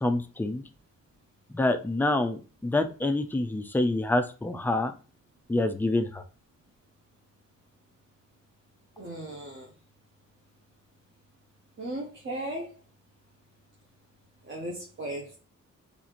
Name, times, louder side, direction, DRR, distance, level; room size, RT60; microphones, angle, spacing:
voice 1, 0.0-0.6 1.5-4.9 5.5-6.2, left 2 dB, 5° left, 0.3 m, -27 dB
voice 2, 9.0-9.7 11.8-12.7 14.4-15.4, right 1 dB, 40° right, 0.8 m, -36 dB
4.0 x 2.5 x 2.8 m
wide cardioid pair, 140°, 31 cm